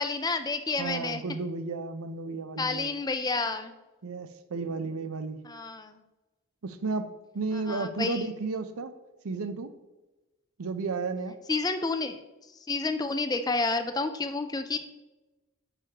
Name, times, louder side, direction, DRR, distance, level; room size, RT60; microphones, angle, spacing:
voice 1, 0.0-1.2 2.6-3.7 5.5-5.9 7.7-8.3 11.5-12.2 12.7-14.8, left 3 dB, 15° left, 9 dB, 0.4 m, -30 dB
voice 2, 0.8-2.9 4.0-5.4 6.6-9.0 9.2-9.8 10.6-11.4, right 4 dB, 80° right, 11 dB, 0.6 m, -33 dB
9.7 x 5.0 x 2.9 m, 1.1 s
head